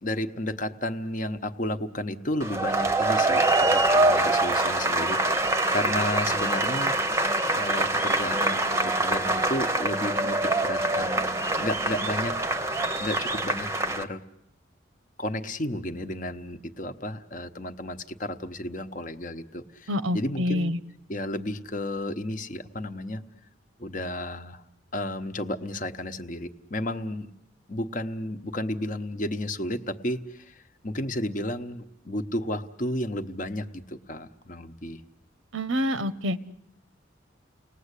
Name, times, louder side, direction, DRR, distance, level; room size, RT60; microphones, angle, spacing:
voice 1, 0.0-6.9 7.5-12.4 13.0-14.2 15.2-20.7 21.1-23.2 23.8-24.6 24.9-27.3 27.7-35.0, left 1 dB, 40° left, 8 dB, 1.0 m, -32 dB
sound 1, 2.4-14.0, right 2 dB, 15° right, 0.9 m, -25 dB
voice 2, 19.9-20.8 35.5-36.4, left 1 dB, 85° right, 13 dB, 1.0 m, -27 dB
30.0 x 19.5 x 8.3 m, 0.85 s
head